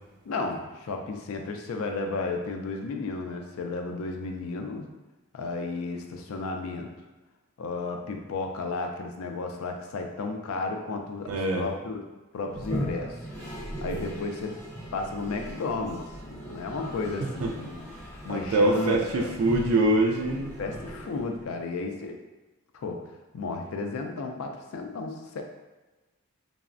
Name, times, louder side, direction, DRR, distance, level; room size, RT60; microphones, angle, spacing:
voice 1, 0.3-4.8 5.3-6.9 7.6-12.0 12.3-13.2 13.8-14.6 14.9-17.8 18.2-19.3 20.6-22.2 22.7-23.1 23.3-25.4, left 3 dB, 70° left, 4 dB, 0.3 m, -33 dB
voice 2, 11.3-11.6 17.4-17.5 18.3-20.5, right 2 dB, 70° right, 1 dB, 0.3 m, -24 dB
Toilet flush, 12.5-21.6, equal, 10° left, 0.8 m, -38 dB
3.2 x 2.0 x 2.4 m, 1.1 s
head